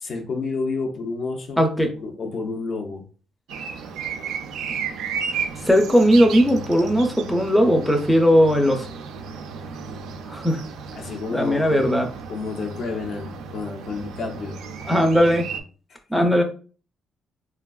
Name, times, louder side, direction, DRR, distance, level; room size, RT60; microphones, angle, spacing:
voice 1, 0.0-3.0 10.9-14.6 15.9-16.3, left 4 dB, 60° left, 3 dB, 0.6 m, -30 dB
voice 2, 1.6-1.9 4.7-4.9 5.6-8.9 10.3-10.6 11.3-12.1 14.9-15.5 16.1-16.4, equal, 5° left, 4 dB, 0.5 m, -18 dB
sound 1, 3.5-15.6, right 6 dB, 90° right, 0.3 m, -34 dB
3.3 x 2.3 x 2.3 m, 0.39 s
cardioid pair, 90°, 0 cm